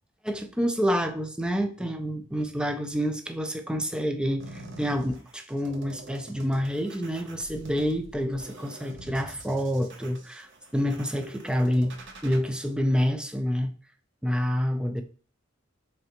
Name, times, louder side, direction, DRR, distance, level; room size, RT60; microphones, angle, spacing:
voice 1, 0.2-12.0 12.2-13.7 14.2-15.0, equal, 5° right, 0.3 m, -28 dB
sound 1, 4.4-12.4, right 2 dB, 65° right, 0.7 m, -46 dB
3.7 x 3.2 x 2.9 m
head